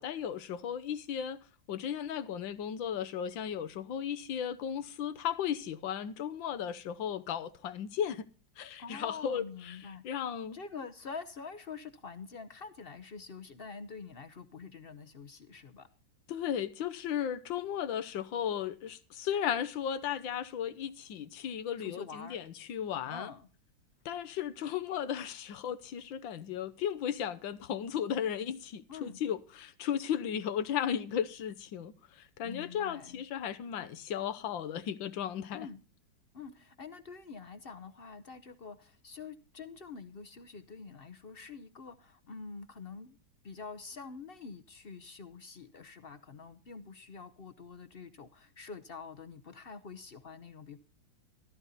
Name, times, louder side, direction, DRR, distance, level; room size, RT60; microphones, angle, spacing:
voice 1, 0.0-1.4 1.7-8.2 8.6-9.8 10.0-10.6 16.3-23.3 24.0-35.7, left 9 dB, 85° left, 1.6 m, -35 dB
voice 2, 8.8-10.0 10.5-15.9 21.8-22.4 23.0-23.5 28.9-29.2 32.4-33.2 35.5-35.8 36.3-43.2 43.4-50.8, left 5 dB, 50° left, 0.7 m, -46 dB
14.0 x 13.5 x 4.1 m
omnidirectional pair, 2.0 m